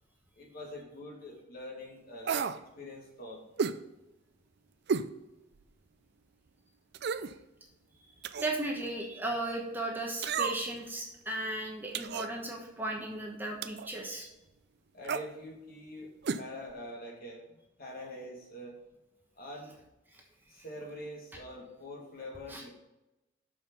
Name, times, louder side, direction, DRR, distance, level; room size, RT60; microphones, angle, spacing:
voice 1, 0.3-3.4 14.9-18.8 19.4-19.8 20.5-22.7, left 1 dB, 50° left, -1 dB, 2.3 m, -45 dB
sound 1, 2.3-2.6 3.6-3.8 4.9-5.1 5.6-5.7 6.9-7.3 8.2-8.6 10.2-10.8 11.9-12.3 13.6-13.9 15.0-15.3 16.2-16.4 16.7-16.8, right 6 dB, 60° right, 0.4 m, -32 dB
voice 2, 8.4-14.3 20.1-20.2 22.5-22.6, right 1 dB, 10° right, 0 dB, 1.2 m, -36 dB
6.7 x 5.7 x 5.5 m, 0.98 s
head